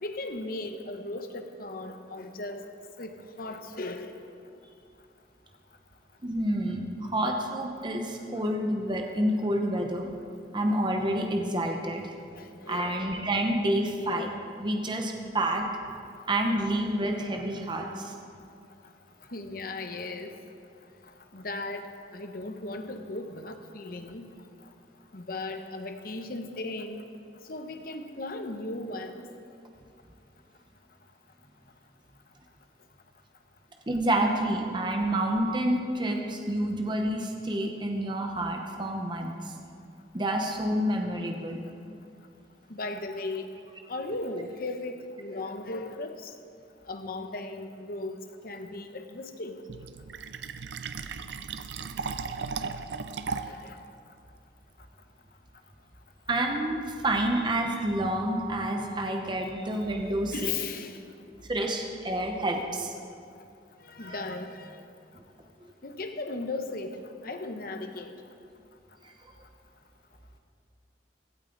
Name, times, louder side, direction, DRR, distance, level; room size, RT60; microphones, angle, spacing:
voice 1, 0.0-2.7 3.0-4.2 12.4-13.0 19.3-20.3 21.3-24.3 25.1-27.0 27.5-29.2 42.7-43.5 43.9-46.3 46.9-49.6 53.3-53.8 60.3-61.0 63.8-64.8 65.8-68.1, left 2 dB, 55° left, 6 dB, 1.0 m, -37 dB
voice 2, 6.2-10.1 10.5-12.1 12.7-15.6 16.3-18.1 33.9-39.5 40.1-41.6 56.3-60.5 61.4-62.9 64.0-64.3 69.0-69.1, right 1 dB, 25° right, 2 dB, 0.9 m, -28 dB
Fill (with liquid), 49.7-53.7, right 5 dB, 80° right, 0.5 m, -36 dB
16.5 x 12.5 x 3.9 m, 2.4 s
head